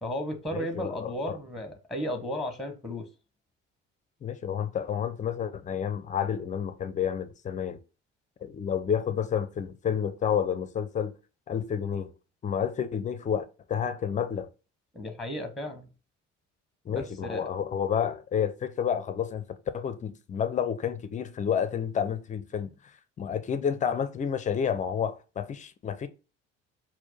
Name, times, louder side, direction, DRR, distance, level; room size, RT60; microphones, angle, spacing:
voice 1, 0.0-3.1 14.9-15.9 16.9-17.5, equal, ahead, 0.8 m, -34 dB
voice 2, 0.5-1.4 4.2-7.8 8.4-11.1 11.5-12.1 12.4-14.5 16.9-19.4 19.7-22.7 23.2-26.1, left 8 dB, 20° left, 0.4 m, -30 dB
4.3 x 2.1 x 4.1 m
figure-of-eight pair, 55°, 37 cm